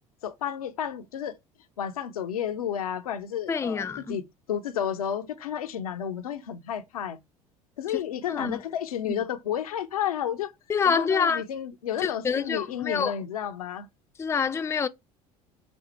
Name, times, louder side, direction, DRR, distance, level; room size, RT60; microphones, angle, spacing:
voice 1, 0.2-1.4 1.8-4.2 4.5-7.2 7.8-10.5 10.8-13.9, left 9 dB, 80° left, 0.5 m, -31 dB
voice 2, 3.5-4.2 7.9-8.0 8.3-8.6 10.7-11.4 12.0-13.1 14.2-14.9, left 6 dB, 15° left, 0.4 m, -26 dB
5.1 x 2.1 x 4.2 m
hypercardioid pair, 65°, 18 cm